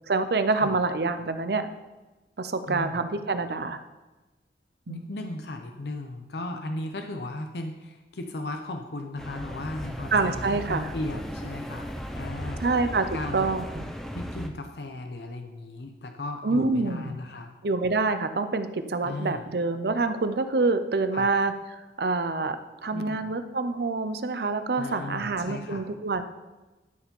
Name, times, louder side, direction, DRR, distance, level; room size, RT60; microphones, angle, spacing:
voice 1, 0.1-1.7 2.4-3.8 4.9-5.1 10.1-10.9 12.6-13.9 16.4-17.2 17.6-26.2, right 3 dB, 60° right, 10 dB, 0.6 m, -26 dB
voice 2, 2.7-3.0 4.9-11.9 12.1-12.6 13.1-13.5 14.1-17.5 19.0-19.5 21.1-21.3 22.9-23.2 24.8-25.9, left 2 dB, 70° left, 5 dB, 0.7 m, -36 dB
sound 1, 9.2-14.5, equal, ahead, 0.6 m, -36 dB
12.5 x 4.9 x 5.4 m, 1.1 s
head